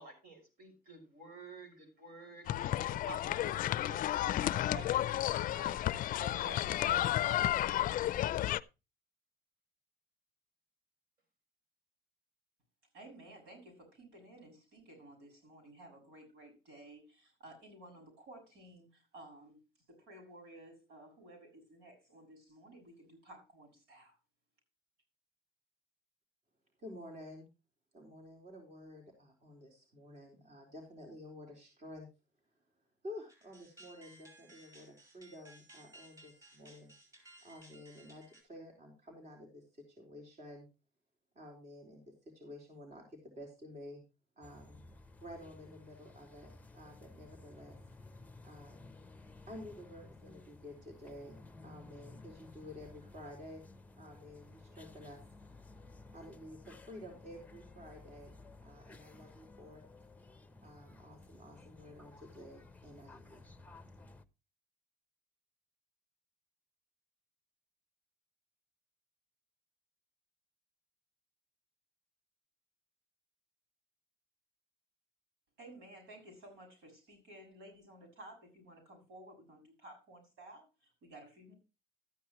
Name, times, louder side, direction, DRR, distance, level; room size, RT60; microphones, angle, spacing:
voice 1, 0.0-5.8 6.2-7.1 7.3-7.9, right 2 dB, 65° right, 5 dB, 5.9 m, -51 dB
sound 1, 2.5-8.6, left 13 dB, 55° left, 0.4 m, -32 dB
voice 2, 12.9-19.6 19.9-24.2 75.6-81.6, right 1 dB, 85° right, 3 dB, 6.6 m, -55 dB
voice 3, 26.8-27.5 27.9-32.1 33.0-36.9 37.4-40.7 41.3-44.0 44.4-44.9 45.2-47.8 48.4-49.0 49.5-53.6 54.0-55.2 56.1-58.3 58.6-59.9 60.6-63.5, left 1 dB, 45° right, 1 dB, 4.2 m, -51 dB
sound 2, 33.3-38.4, right 1 dB, 20° right, 5.7 m, -59 dB
sound 3, 44.4-64.2, left 2 dB, 10° left, 0.7 m, -55 dB
13.0 x 10.0 x 3.0 m, 0.28 s
cardioid pair, 110°, 17 cm